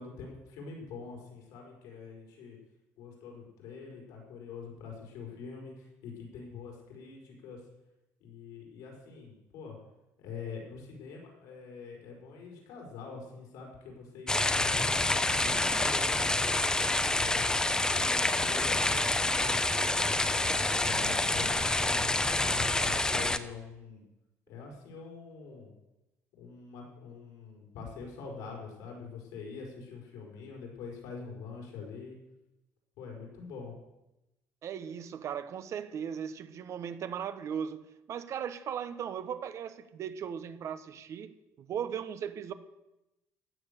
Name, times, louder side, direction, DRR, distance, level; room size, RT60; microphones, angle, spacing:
voice 1, 0.0-2.6 3.0-7.6 8.2-9.8 10.2-16.5 17.1-19.6 20.0-22.1 22.5-24.0 24.5-25.7 26.4-32.2 33.0-33.7, left 5 dB, 90° left, 0 dB, 5.2 m, -45 dB
sound 1, 14.3-23.4, left 2 dB, 10° left, 0.9 m, -27 dB
voice 2, 34.6-41.3 41.6-42.5, right 8 dB, 55° right, 11 dB, 1.2 m, -37 dB
15.5 x 9.9 x 6.8 m, 0.93 s
cardioid pair, 110°, 6 cm